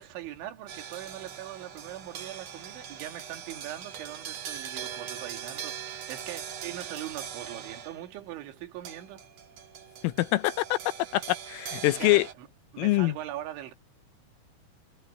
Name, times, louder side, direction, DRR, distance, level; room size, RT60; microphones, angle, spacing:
voice 1, 0.0-9.2 11.9-12.5 12.7-13.7, right 13 dB, 70° right, 4.3 m, -41 dB
sound 1, 0.7-8.2 8.8-12.3, right 8 dB, 85° right, 1.4 m, -41 dB
voice 2, 10.0-10.8 11.1-12.3 12.8-13.1, left 19 dB, 80° left, 3.3 m, -24 dB
omnidirectional pair, 5.9 m